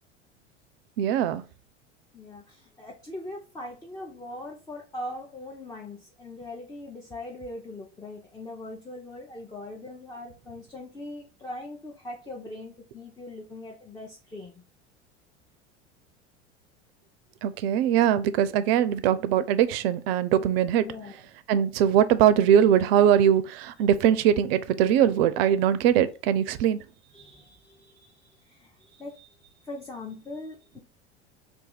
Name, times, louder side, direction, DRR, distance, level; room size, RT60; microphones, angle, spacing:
voice 1, 1.0-1.4 17.4-20.9 21.5-26.8, right 9 dB, 60° right, 0.5 m, -21 dB
voice 2, 2.1-14.6 20.8-21.2 27.1-30.8, left 1 dB, 10° left, 0.6 m, -41 dB
2.6 x 2.4 x 3.9 m
hypercardioid pair, 80°, 34 cm